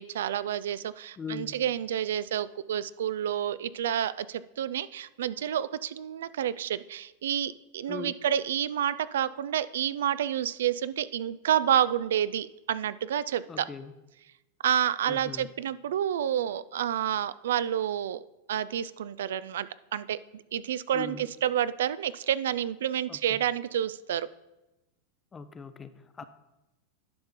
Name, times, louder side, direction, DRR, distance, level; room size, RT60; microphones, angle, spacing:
voice 1, 0.0-13.7 14.6-18.2 18.5-20.2 20.5-24.3, right 10 dB, 90° right, 16 dB, 0.3 m, -29 dB
voice 2, 1.2-1.5 7.9-8.1 13.5-13.9 15.1-15.5 20.9-21.3 23.1-23.4 25.3-26.2, left 5 dB, 15° left, 12 dB, 0.4 m, -40 dB
10.5 x 5.6 x 3.7 m, 0.99 s
supercardioid pair, 155°, 0 cm